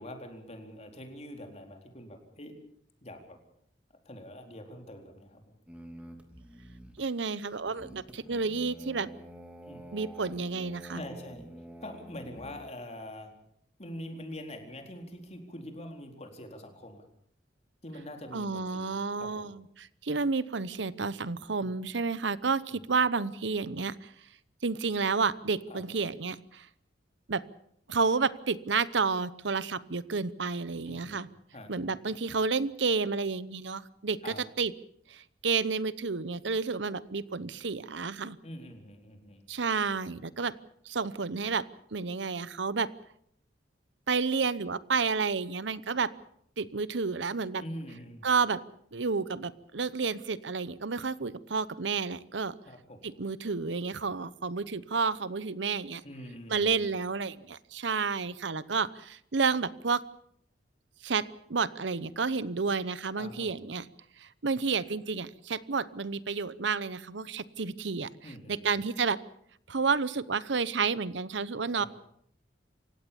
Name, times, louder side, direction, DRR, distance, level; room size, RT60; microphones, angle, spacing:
voice 1, 0.0-2.5 3.0-3.4 4.1-5.6 9.7-9.8 11.0-11.5 11.8-13.3 13.8-17.1 17.8-19.6 21.6-21.7 22.7-22.8 25.7-25.8 30.9-31.2 31.5-32.0 34.2-34.4 38.4-39.4 47.6-48.3 52.7-53.1 56.0-56.8 63.2-63.7 68.2-68.7 71.7-71.9, left 1 dB, 35° left, 4 dB, 4.2 m, -44 dB
sound 1, 5.7-12.7, equal, 5° right, 3.1 m, -48 dB
voice 2, 7.0-9.1 9.9-11.0 18.3-24.1 24.6-26.7 27.3-27.4 27.9-31.3 31.7-34.7 35.1-38.4 39.5-40.5 40.8-41.6 41.9-42.9 44.1-46.1 46.6-47.6 48.2-48.6 48.9-52.5 53.0-56.0 56.5-60.0 61.0-63.9 64.2-68.1 68.5-69.2 69.7-71.8, right 4 dB, 75° right, 17 dB, 0.9 m, -30 dB
28.0 x 16.5 x 7.1 m, 0.68 s
head